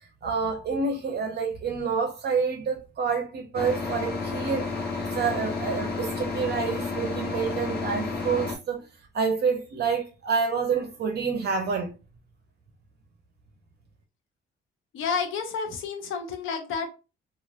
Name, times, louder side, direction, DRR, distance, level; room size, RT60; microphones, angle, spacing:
voice 1, 0.2-8.8 9.1-12.0, right 5 dB, 55° right, 0.7 m, -28 dB
sound 1, 3.5-8.6, left 4 dB, 50° left, 0.9 m, -31 dB
voice 2, 14.9-16.9, left 5 dB, 80° left, 0.7 m, -30 dB
3.1 x 2.4 x 2.4 m
cardioid pair, 90°, 20 cm